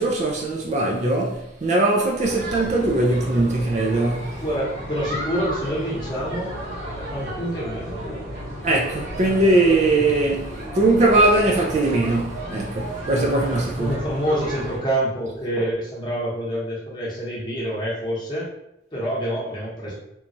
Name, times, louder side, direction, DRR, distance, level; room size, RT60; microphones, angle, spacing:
voice 1, 0.0-4.3 8.6-13.9, right 2 dB, 40° right, 0.3 m, -20 dB
sound 1, 2.2-14.8, equal, 75° right, 1.3 m, -33 dB
voice 2, 4.4-6.5 7.1-8.2 13.8-18.5 18.9-19.9, right 1 dB, 25° left, 0.9 m, -27 dB
2.9 x 2.3 x 2.6 m
head